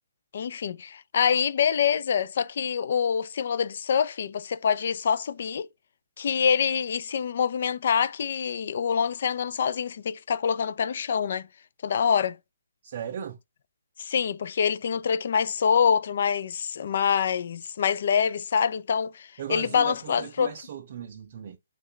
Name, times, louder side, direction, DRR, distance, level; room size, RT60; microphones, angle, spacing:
voice 1, 0.3-5.7 6.2-11.5 11.8-12.4 14.0-20.5, left 7 dB, 55° left, 0.3 m, -25 dB
voice 2, 12.8-13.4 19.4-21.6, right 8 dB, 45° right, 0.4 m, -37 dB
3.1 x 2.2 x 3.8 m
hypercardioid pair, 160°, 0 cm